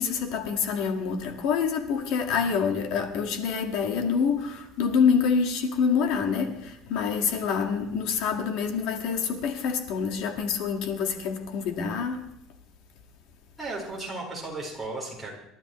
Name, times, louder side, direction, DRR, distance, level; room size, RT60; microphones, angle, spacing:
voice 1, 0.0-12.3, left 6 dB, 60° left, 1.8 m, -26 dB
voice 2, 13.6-15.3, right 2 dB, ahead, 4.6 m, -35 dB
28.0 x 12.5 x 3.1 m
cardioid pair, 165°, 0 cm